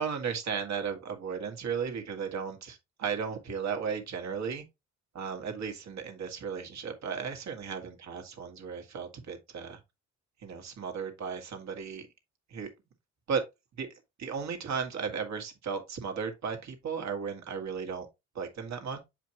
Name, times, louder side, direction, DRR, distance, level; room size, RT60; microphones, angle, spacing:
voice 1, 0.0-4.6 5.1-9.8 10.4-12.1 12.5-12.7 13.3-13.4 13.8-13.9 14.2-18.1 18.4-19.0, right 6 dB, 65° right, 1.7 m, -35 dB
7.7 x 4.9 x 2.9 m
cardioid pair, 90°, 30 cm